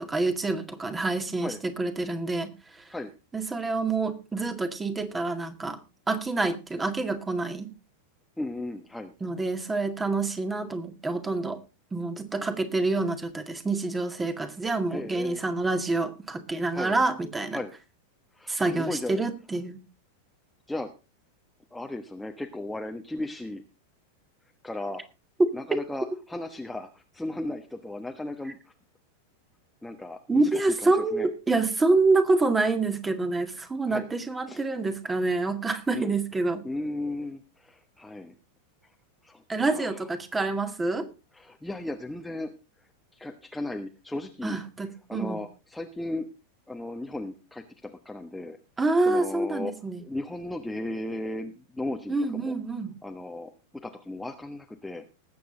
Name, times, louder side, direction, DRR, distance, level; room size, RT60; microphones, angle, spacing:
voice 1, 0.0-2.9 3.3-5.8 6.1-7.7 9.2-11.6 11.9-17.6 18.5-19.8 25.4-25.8 30.3-36.7 39.5-41.1 44.4-45.4 48.8-50.0 52.1-53.0, right 3 dB, 10° right, 9 dB, 2.0 m, -27 dB
voice 2, 8.4-9.1 14.9-15.4 16.7-17.0 17.5-17.7 18.4-19.2 20.7-20.9 21.7-23.6 24.6-25.0 25.5-28.6 29.8-31.3 33.9-34.1 34.5-34.6 35.9-36.1 36.6-38.3 39.2-39.4 39.7-39.9 41.4-42.5 43.1-44.6 45.1-46.3 46.7-48.6 49.0-49.7 50.0-52.5 53.0-53.5 53.8-55.0, left 2 dB, 5° left, 3 dB, 1.3 m, -35 dB
20.0 x 8.3 x 3.8 m, 0.30 s
figure-of-eight pair, 90°, 0 cm